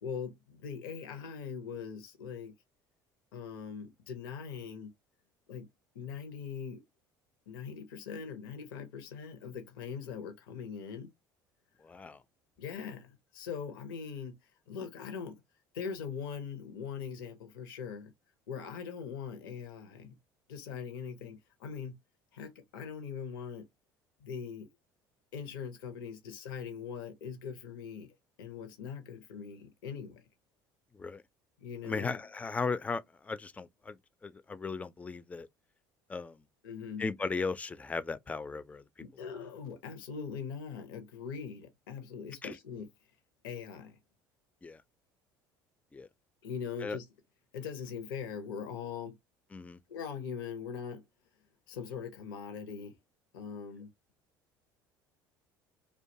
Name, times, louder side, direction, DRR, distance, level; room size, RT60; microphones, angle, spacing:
voice 1, 0.0-2.5 3.3-4.9 5.5-5.7 5.9-6.8 7.5-11.1 12.6-14.4 14.7-15.4 15.7-18.1 18.5-20.2 20.5-21.9 22.3-23.7 24.2-24.7 25.3-30.2 31.6-32.2 36.6-37.0 39.0-42.9 43.4-44.0 46.4-47.1 47.5-49.1 49.9-51.0 51.7-53.0 53.3-53.9, left 6 dB, 80° left, 0.6 m, -41 dB
voice 2, 11.8-12.2 31.0-31.2 31.8-34.0 34.2-35.5 36.1-36.4 37.0-38.8 42.4-42.6 44.6-44.8 45.9-46.1 46.8-47.0 49.5-49.8, left 4 dB, 10° left, 0.3 m, -36 dB
2.5 x 2.2 x 2.6 m
hypercardioid pair, 65°, 11 cm